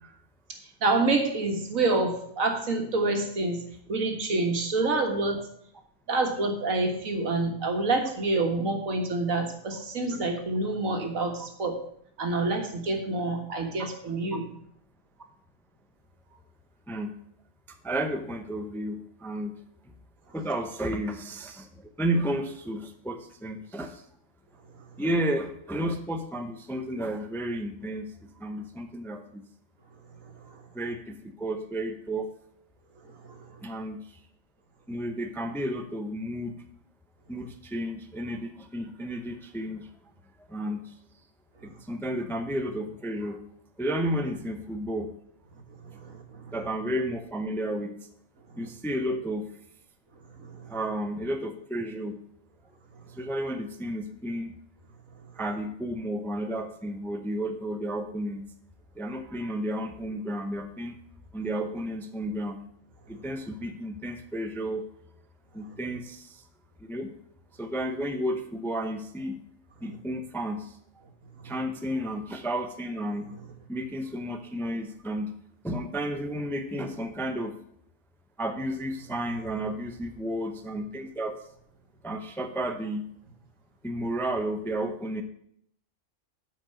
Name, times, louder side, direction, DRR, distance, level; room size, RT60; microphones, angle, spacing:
voice 1, 0.5-3.6 3.9-5.4 6.1-11.8 12.2-14.4 30.5-30.6 33.2-33.6 45.8-46.5 50.4-50.7 71.4-71.5, right 2 dB, 80° right, 4 dB, 1.9 m, -27 dB
voice 2, 17.8-19.5 20.3-24.0 25.0-29.4 30.7-32.3 33.6-34.0 34.9-36.5 37.3-39.9 40.5-40.9 41.8-43.4 43.8-45.1 46.5-47.9 48.6-49.5 50.7-52.2 53.1-54.5 55.4-58.4 59.0-60.9 61.3-62.6 63.1-64.8 65.5-66.4 66.8-67.1 67.6-69.4 69.8-70.8 71.4-73.3 73.7-75.3 75.6-77.5 78.4-81.3 82.0-83.0 83.8-85.2, right 1 dB, ahead, 6 dB, 0.6 m, -32 dB
9.0 x 5.3 x 7.7 m, 0.69 s
omnidirectional pair, 1.4 m